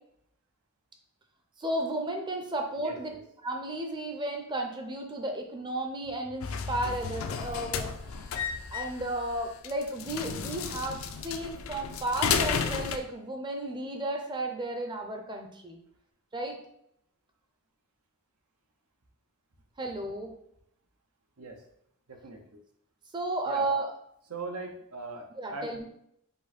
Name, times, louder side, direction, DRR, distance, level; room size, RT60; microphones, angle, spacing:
voice 1, 1.6-3.1 3.4-8.4 8.7-15.8 16.3-16.6 19.8-20.3 23.1-23.9 25.4-25.9, right 1 dB, 20° right, 3 dB, 0.6 m, -33 dB
voice 2, 2.8-3.2 21.4-21.6 22.1-22.6 23.5-23.7 24.3-25.7, right 3 dB, 90° right, 3 dB, 0.9 m, -40 dB
sound 1, 6.4-13.0, left 6 dB, 65° left, 0.4 m, -33 dB
5.2 x 2.2 x 4.2 m, 0.74 s
head